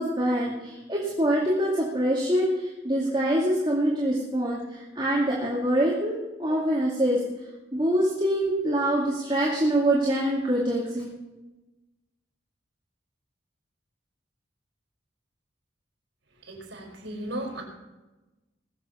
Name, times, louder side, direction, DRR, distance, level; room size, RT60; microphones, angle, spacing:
voice 1, 0.0-7.2 7.7-11.1, right 1 dB, 25° right, -5 dB, 2.3 m, -25 dB
voice 2, 16.4-17.6, right 1 dB, 80° right, 0 dB, 4.7 m, -35 dB
21.0 x 7.3 x 5.6 m, 1.1 s
head